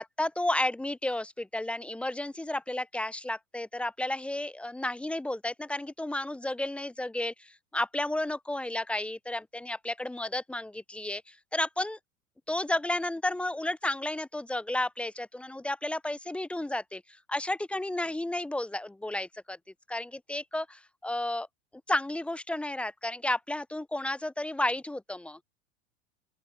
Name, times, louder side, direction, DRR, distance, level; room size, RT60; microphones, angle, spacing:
voice 1, 0.0-12.0 12.5-17.0 17.3-19.6 19.9-21.5 21.9-25.4, left 1 dB, 5° left, 0.5 m, -32 dB
open air
figure-of-eight pair, 90°, 38 cm